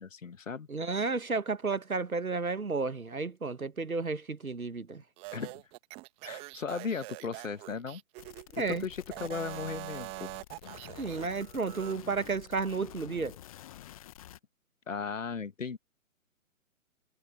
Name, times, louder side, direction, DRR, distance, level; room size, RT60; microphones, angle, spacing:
voice 1, 0.0-0.7 5.3-5.5 6.2-8.0 8.7-10.3 14.9-15.8, left 5 dB, 65° left, 1.5 m, -36 dB
voice 2, 0.7-5.0 8.5-8.8 11.0-13.4, right 4 dB, 80° right, 1.4 m, -32 dB
sound 1, 5.2-8.6 9.0-12.0, right 23 dB, 15° right, 1.6 m, -44 dB
sound 2, 8.2-14.4, left 13 dB, 25° left, 1.4 m, -50 dB
figure-of-eight pair, 135°, 42 cm